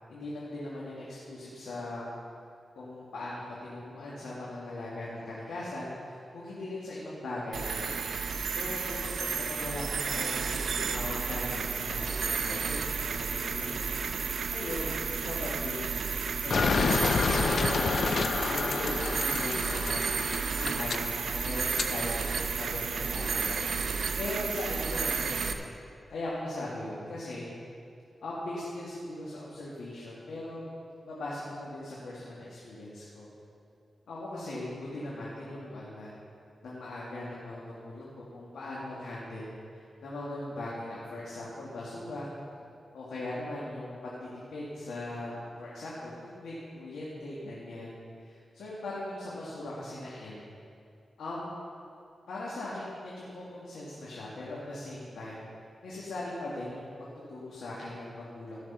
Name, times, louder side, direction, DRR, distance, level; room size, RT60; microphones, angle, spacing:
voice 1, 0.1-2.1 2.8-7.9 8.5-10.5 10.9-14.0 14.5-16.0 16.4-21.0 21.3-25.6 26.1-27.5 28.2-30.7 31.0-33.3 34.1-36.1 36.6-42.3 42.9-50.4 51.2-51.6 52.3-55.4 55.8-56.9 57.3-58.6, left 1 dB, 90° left, -7 dB, 2.1 m, -39 dB
sound 1, 7.5-25.5, right 5 dB, 75° right, 0.6 m, -32 dB
sound 2, 16.5-21.9, left 5 dB, 65° left, 0.5 m, -29 dB
14.5 x 6.2 x 5.7 m, 2.6 s
cardioid pair, 75°, 0 cm